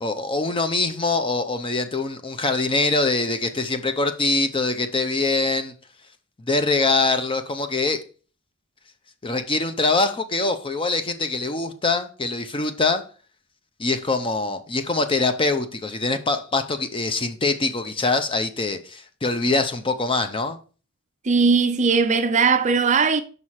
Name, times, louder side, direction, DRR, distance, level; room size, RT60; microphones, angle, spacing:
voice 1, 0.0-5.7 6.4-8.0 9.2-13.0 13.8-20.6, left 3 dB, 25° left, 0.7 m, -23 dB
voice 2, 21.2-23.2, right 5 dB, 35° right, 0.5 m, -19 dB
5.7 x 5.4 x 4.7 m
head